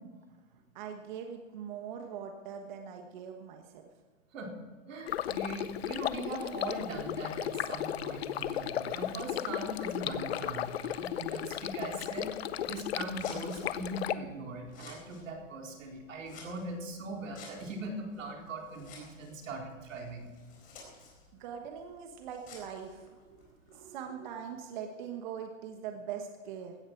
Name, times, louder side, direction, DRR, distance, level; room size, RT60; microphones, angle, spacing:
voice 1, 0.7-3.9 20.8-20.9 21.3-26.8, right 7 dB, 40° right, 4 dB, 1.3 m, -42 dB
voice 2, 4.9-12.3 12.6-20.3, right 2 dB, 80° right, 1 dB, 4.3 m, -40 dB
Stream, 5.1-14.1, left 11 dB, 55° left, 0.7 m, -35 dB
sound 1, 5.9-13.6, right 3 dB, 10° right, 1.2 m, -53 dB
Scissors, 13.1-23.9, left 4 dB, 20° left, 4.3 m, -55 dB
16.5 x 13.0 x 4.6 m, 1.5 s
hypercardioid pair, 160°, 38 cm